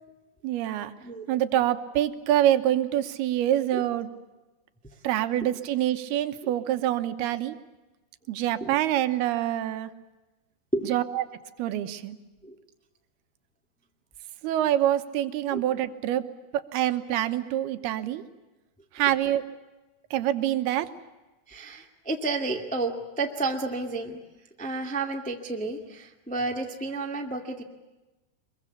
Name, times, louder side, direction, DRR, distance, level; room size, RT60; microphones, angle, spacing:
voice 1, 0.4-0.9 1.3-4.1 5.0-7.5 8.3-9.9 10.8-11.3 11.6-12.2 14.4-16.2 16.5-18.2 19.0-19.4 20.1-20.9, right 12 dB, 85° right, 10 dB, 3.0 m, -26 dB
voice 2, 21.5-24.2 24.6-27.6, right 3 dB, 5° left, 2 dB, 0.9 m, -31 dB
24.5 x 22.5 x 8.4 m, 1.1 s
omnidirectional pair, 4.6 m